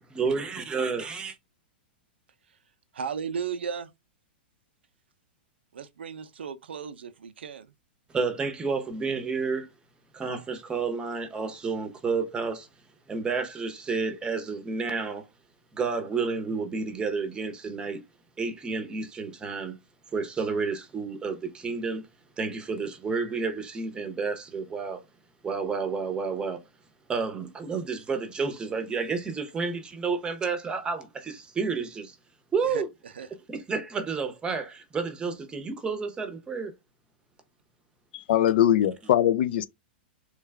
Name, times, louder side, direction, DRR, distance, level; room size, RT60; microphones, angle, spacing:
voice 1, 0.1-1.4 8.1-9.7 10.1-12.7 13.1-15.2 15.7-18.0 18.4-19.7 20.1-22.0 22.4-25.0 25.4-26.6 27.1-32.2 32.5-32.9 33.5-36.7, right 4 dB, 15° right, 0.7 m, -30 dB
voice 2, 2.9-3.9 5.7-7.7 32.6-33.3, right 6 dB, 90° right, 0.5 m, -35 dB
voice 3, 38.1-39.7, left 11 dB, 65° left, 0.4 m, -22 dB
3.2 x 2.3 x 3.3 m
hypercardioid pair, 130°, 6 cm